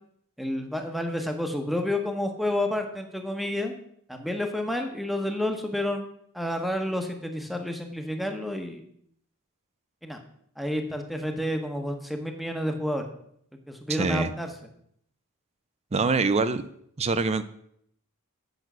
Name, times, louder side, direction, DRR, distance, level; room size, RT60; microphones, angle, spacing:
voice 1, 0.4-3.7 4.1-6.1 6.3-8.8 10.0-10.2 10.6-13.0 13.7-14.5, left 1 dB, ahead, 5 dB, 0.9 m, -30 dB
voice 2, 13.9-14.3 15.9-16.6 17.0-17.4, right 4 dB, 30° right, 13 dB, 0.5 m, -24 dB
8.1 x 6.1 x 6.0 m, 0.70 s
head